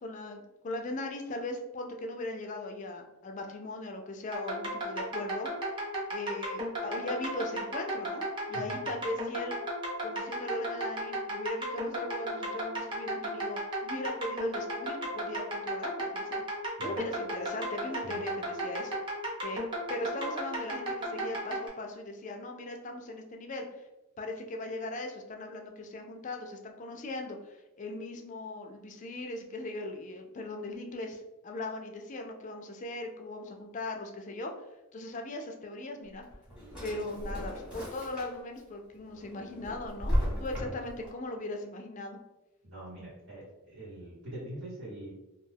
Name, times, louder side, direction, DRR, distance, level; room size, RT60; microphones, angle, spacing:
voice 1, 0.0-5.5 6.1-8.2 8.5-9.6 10.0-16.4 16.8-19.0 19.4-23.7 24.2-34.5 34.9-36.3 36.8-42.2, left 2 dB, 35° left, 3 dB, 0.3 m, -39 dB
sound 1, 4.3-21.7, right 1 dB, 20° right, 0.6 m, -34 dB
Drawer open or close, 36.0-38.6 39.0-41.1, equal, 5° right, 0.9 m, -34 dB
voice 2, 42.6-45.1, right 1 dB, 75° right, -11 dB, 1.1 m, -43 dB
2.4 x 2.2 x 3.3 m, 1.0 s
head